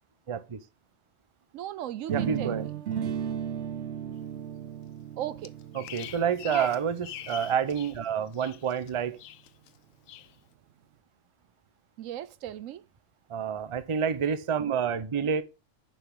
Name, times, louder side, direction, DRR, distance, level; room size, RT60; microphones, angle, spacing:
voice 1, 0.3-0.6 2.1-2.7 5.7-9.2 13.3-15.4, right 7 dB, 35° right, 0.6 m, -28 dB
voice 2, 1.5-2.7 5.2-5.5 6.4-6.7 12.0-12.8, right 11 dB, 90° right, 1.0 m, -36 dB
sound 1, 2.1-8.0, right 9 dB, 65° right, 0.8 m, -35 dB
Bird vocalization bird call bird song, 5.4-8.0 8.3-8.9 9.2-9.7 10.1-10.3, left 12 dB, 85° left, 1.0 m, -43 dB
10.0 x 5.3 x 3.7 m
omnidirectional pair, 1.3 m